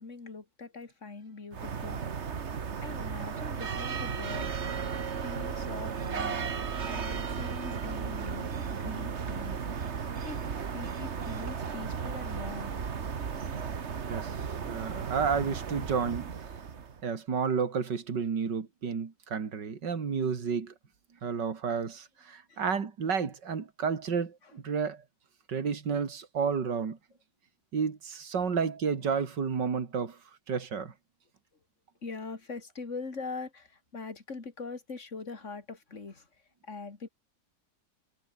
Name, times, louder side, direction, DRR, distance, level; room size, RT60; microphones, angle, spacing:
voice 1, 0.0-2.2 2.8-4.5 5.2-6.5 6.9-9.7 10.2-12.7 22.5-22.6 24.4-24.5 28.4-28.5 32.0-37.1, left 4 dB, 40° left, 3.1 m, -42 dB
sound 1, 1.5-17.0, right 6 dB, 40° right, 1.5 m, -35 dB
voice 2, 14.1-16.3 17.0-20.7 21.2-25.0 25.5-27.0 27.7-30.2 30.5-30.9, right 6 dB, 75° right, 3.0 m, -31 dB
omnidirectional pair, 1.9 m